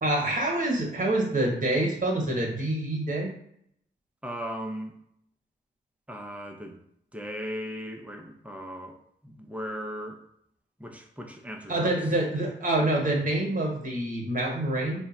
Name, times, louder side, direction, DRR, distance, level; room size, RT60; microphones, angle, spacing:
voice 1, 0.0-3.3 11.7-15.0, right 1 dB, 45° right, -1 dB, 1.2 m, -26 dB
voice 2, 4.2-4.9 6.1-6.8 7.1-9.0 9.2-10.2 10.8-12.2, equal, 5° right, 3 dB, 0.7 m, -37 dB
3.6 x 2.2 x 4.1 m, 0.70 s
cardioid pair, 65°, 19 cm